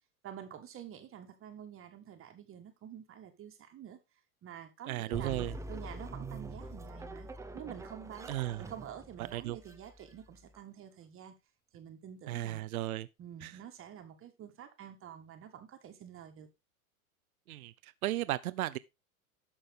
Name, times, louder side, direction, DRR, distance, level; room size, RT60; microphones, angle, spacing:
voice 1, 0.2-4.0 4.4-7.3 7.5-8.3 8.6-11.3 11.7-12.6 13.2-16.5, right 9 dB, 30° right, 1.7 m, -48 dB
voice 2, 4.9-5.6 8.3-8.6 9.2-9.6 12.3-13.1 13.4-13.5 17.5-18.8, right 15 dB, 80° right, 0.7 m, -35 dB
sound 1, 5.1-10.6, right 2 dB, 5° right, 0.7 m, -45 dB
11.5 x 6.3 x 3.6 m
hypercardioid pair, 115°, 42 cm